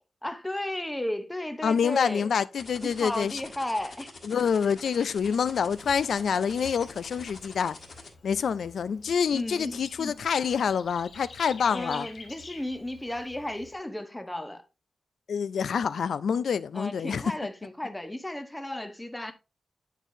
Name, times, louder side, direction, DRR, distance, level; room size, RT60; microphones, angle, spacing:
voice 1, 0.2-2.3 2.8-4.1 9.3-10.2 11.7-14.6 16.7-19.3, left 1 dB, 10° left, 0.7 m, -34 dB
voice 2, 1.6-3.4 4.2-7.8 8.2-12.1 15.3-17.3, left 6 dB, 85° left, 0.3 m, -27 dB
sound 1, 2.6-8.1, left 3 dB, 50° left, 1.5 m, -45 dB
Bird / Insect, 5.2-13.7, left 3 dB, 70° left, 1.2 m, -49 dB
9.8 x 4.6 x 2.6 m
wide cardioid pair, 180°, 0 cm